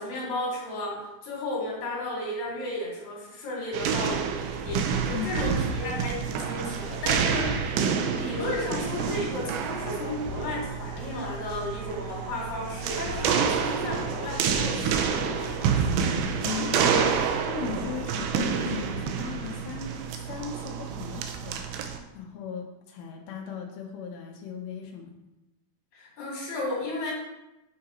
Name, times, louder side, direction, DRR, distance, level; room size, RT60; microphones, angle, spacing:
voice 1, 0.0-16.0 25.9-27.1, left 1 dB, 55° left, -3 dB, 3.3 m, -34 dB
sound 1, 3.7-22.0, right 6 dB, 90° right, 2.6 m, -28 dB
sound 2, 4.7-20.3, left 2 dB, 75° left, 2.5 m, -43 dB
voice 2, 16.4-17.1 17.5-25.2, left 7 dB, 90° left, 1 dB, 2.7 m, -37 dB
8.5 x 4.8 x 4.2 m, 0.96 s
omnidirectional pair, 4.3 m